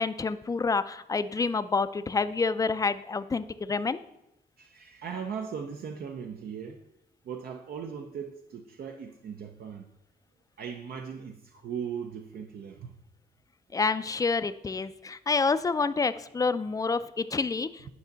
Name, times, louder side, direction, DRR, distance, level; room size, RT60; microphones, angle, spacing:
voice 1, 0.0-4.0 13.7-17.9, left 4 dB, 20° left, 0.4 m, -28 dB
voice 2, 4.6-6.8 7.2-9.9 10.6-12.9, right 7 dB, 65° right, 0.6 m, -38 dB
9.7 x 5.3 x 3.9 m
cardioid pair, 105°, 17 cm